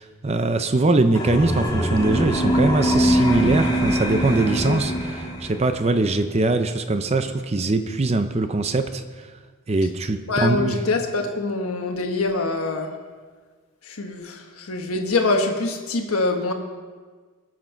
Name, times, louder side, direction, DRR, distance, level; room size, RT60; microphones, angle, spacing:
voice 1, 0.0-9.0 9.7-10.8, right 2 dB, 30° right, 9 dB, 0.5 m, -22 dB
sound 1, 1.1-5.8, right 1 dB, 20° left, 1.5 m, -23 dB
voice 2, 10.3-12.9 13.9-16.5, left 3 dB, 85° left, 3 dB, 1.2 m, -24 dB
22.0 x 7.6 x 4.5 m, 1.5 s
head